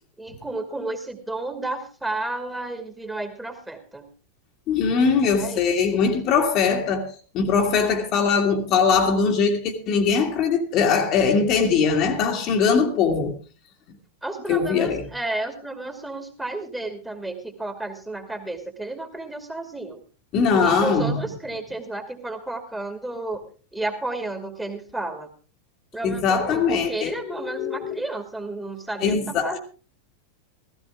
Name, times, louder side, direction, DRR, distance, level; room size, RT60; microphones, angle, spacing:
voice 1, 0.2-4.1 5.4-5.6 5.9-6.0 14.2-20.0 20.6-23.4 23.7-25.3 25.9-29.6, right 2 dB, 5° right, 2.3 m, -32 dB
voice 2, 4.7-7.1 7.3-13.4 14.5-15.0 20.3-21.3 26.0-27.9 29.0-29.6, left 5 dB, 35° left, 1.9 m, -21 dB
15.5 x 15.0 x 3.6 m
figure-of-eight pair, 90°, 0 cm